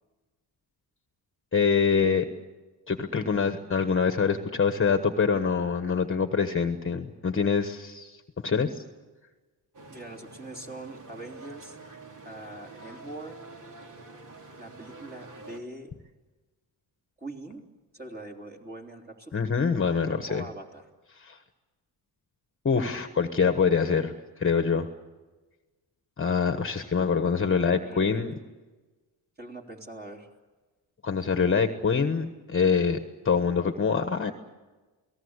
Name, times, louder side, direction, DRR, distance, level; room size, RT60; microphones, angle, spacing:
voice 1, 1.5-2.2 2.9-8.8 19.3-20.4 21.1-21.4 22.6-24.1 24.4-24.9 26.2-28.3 31.0-33.0 33.2-34.3, left 5 dB, 30° left, 7 dB, 1.3 m, -25 dB
sound 1, 9.7-15.6, right 3 dB, 50° right, 2.8 m, -47 dB
voice 2, 9.9-11.8 12.2-13.4 14.6-15.9 17.2-17.6 17.9-19.5 20.2-20.9 27.5-28.1 29.4-30.3, right 2 dB, 25° right, 1 dB, 3.5 m, -42 dB
29.5 x 18.5 x 8.2 m, 1.2 s
cardioid pair, 110°, 40 cm